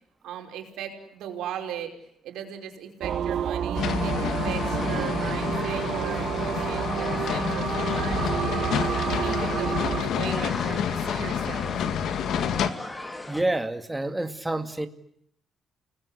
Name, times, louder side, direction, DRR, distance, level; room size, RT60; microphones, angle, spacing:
voice 1, 0.2-1.9 2.2-8.6 9.0-11.7, right 9 dB, 85° right, 4 dB, 5.1 m, -38 dB
sound 1, 3.0-10.0, right 9 dB, 65° right, 1.5 m, -29 dB
sound 2, 3.7-12.7, left 8 dB, 75° left, 2.0 m, -29 dB
sound 3, 3.8-13.4, left 2 dB, 15° left, 3.5 m, -38 dB
voice 2, 13.3-14.9, right 2 dB, 10° right, 8 dB, 2.3 m, -28 dB
29.5 x 20.0 x 10.0 m, 0.71 s
cardioid pair, 90°, 0 cm